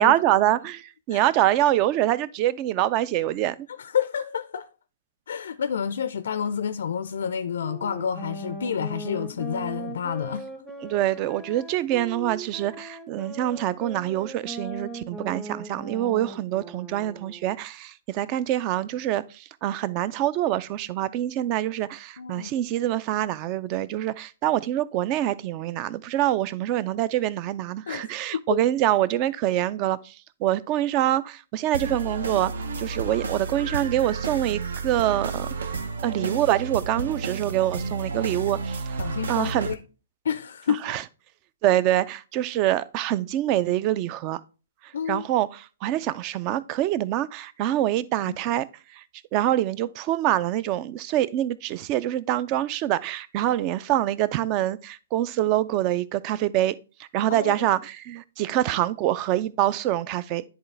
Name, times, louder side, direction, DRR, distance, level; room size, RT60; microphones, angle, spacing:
voice 1, 0.0-3.6 10.8-30.1 30.4-32.5 32.8-35.5 36.0-39.0 39.3-39.7 40.9-41.0 41.6-44.4 44.8-48.6 48.9-49.0 49.3-60.4, right 13 dB, 35° right, 0.4 m, -25 dB
voice 2, 3.7-4.7 5.3-10.5 22.2-22.5 27.9-28.6 39.0-39.8 40.2-40.9 44.9-45.3 48.3-48.4 53.9-54.0 57.3-57.7, left 8 dB, 70° left, 0.4 m, -29 dB
sound 1, 7.6-17.6, right 3 dB, 5° right, 1.0 m, -39 dB
sound 2, 31.7-39.7, right 4 dB, 75° right, 0.7 m, -31 dB
10.0 x 3.9 x 3.3 m
hypercardioid pair, 125°, 0 cm